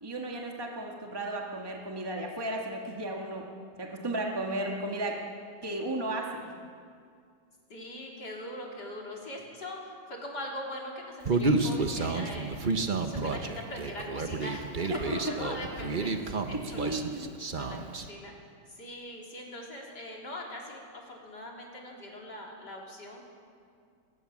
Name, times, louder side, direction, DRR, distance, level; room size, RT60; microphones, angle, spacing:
voice 1, 0.0-3.5 3.8-5.2 5.6-6.3 14.9-15.0 16.5-17.3, right 1 dB, 15° right, 0 dB, 1.9 m, -34 dB
voice 2, 7.7-12.6 13.0-17.2 17.6-18.3 18.7-23.2, left 1 dB, 65° left, -1 dB, 4.4 m, -41 dB
Human voice, 11.2-18.1, right 3 dB, 30° right, 1.1 m, -30 dB
21.5 x 20.0 x 7.4 m, 2.3 s
omnidirectional pair, 1.9 m